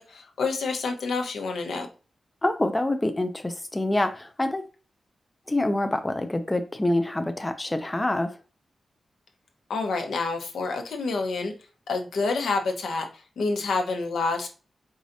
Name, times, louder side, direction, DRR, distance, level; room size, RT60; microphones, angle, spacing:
voice 1, 0.0-1.9 9.7-11.5 11.9-13.1 13.4-14.5, left 3 dB, 85° left, 1.0 m, -28 dB
voice 2, 2.4-4.7 5.5-8.3, left 1 dB, 10° left, 0.4 m, -26 dB
4.8 x 4.0 x 2.6 m
wide cardioid pair, 180°, 0 cm